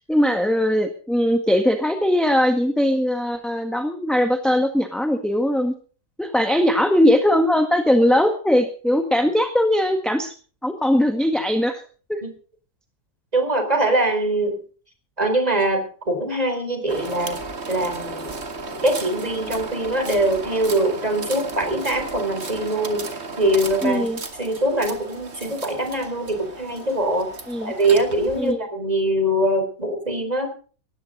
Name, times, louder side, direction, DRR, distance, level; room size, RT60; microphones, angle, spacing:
voice 1, 0.1-5.7 6.2-10.3 10.6-11.8 12.1-12.2 23.8-24.2 27.5-27.7 28.4-28.7, left 1 dB, ahead, 5 dB, 1.5 m, -20 dB
voice 2, 13.3-14.6 15.2-17.4 17.7-18.4 18.8-23.1 23.4-24.1 24.4-27.3 27.6-30.5, right 1 dB, 25° right, 6 dB, 4.2 m, -22 dB
sound 1, 16.9-28.5, right 3 dB, 40° right, 2.1 m, -34 dB
19.0 x 14.5 x 3.9 m, 0.40 s
omnidirectional pair, 1.7 m